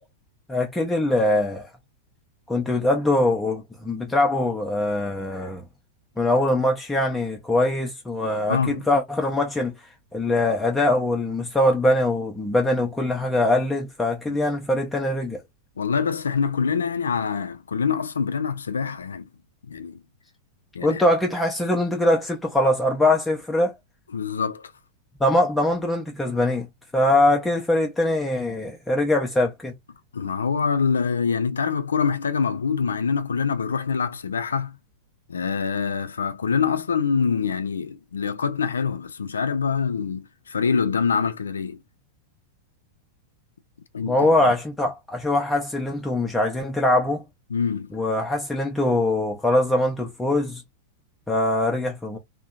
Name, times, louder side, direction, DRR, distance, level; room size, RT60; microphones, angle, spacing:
voice 1, 0.5-1.7 2.5-5.6 6.2-9.7 10.1-15.4 20.8-23.7 25.2-26.7 26.9-29.7 44.0-47.2 47.9-50.6 51.3-52.2, left 1 dB, 10° left, 0.6 m, -22 dB
voice 2, 8.5-8.9 14.3-14.4 15.8-19.3 19.7-20.0 20.7-21.0 24.1-24.7 30.1-34.8 35.3-41.8 43.9-44.5 47.5-47.9, left 6 dB, 75° left, 0.4 m, -25 dB
2.6 x 2.2 x 2.3 m
figure-of-eight pair, 95°, 0 cm